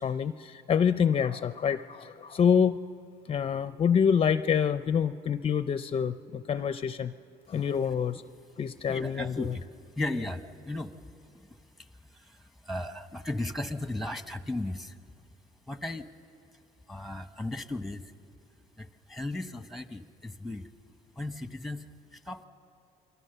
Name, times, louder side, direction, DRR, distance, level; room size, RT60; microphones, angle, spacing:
voice 1, 0.0-2.8 3.3-7.1 7.5-8.2 8.6-9.6, left 7 dB, 35° left, 12 dB, 0.5 m, -26 dB
voice 2, 8.9-9.6 9.9-11.0 11.3-15.0 15.7-16.1 16.9-18.1 18.8-20.7 21.2-22.4, left 2 dB, ahead, 9 dB, 1.1 m, -36 dB
28.0 x 23.5 x 6.7 m, 2.6 s
cardioid pair, 110°, 17 cm